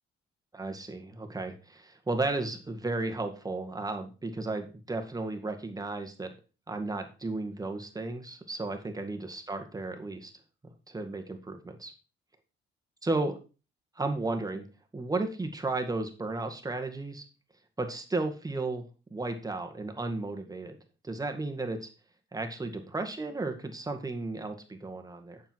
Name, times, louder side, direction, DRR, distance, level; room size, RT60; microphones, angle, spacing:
voice 1, 0.5-6.3 6.7-10.3 10.6-11.9 13.0-13.4 14.0-14.7 14.9-17.2 17.8-18.8 19.1-20.8 21.0-21.9 22.3-25.4, right 2 dB, 20° right, 5 dB, 1.9 m, -34 dB
9.1 x 7.0 x 4.6 m, 0.34 s
cardioid pair, 90°, 20 cm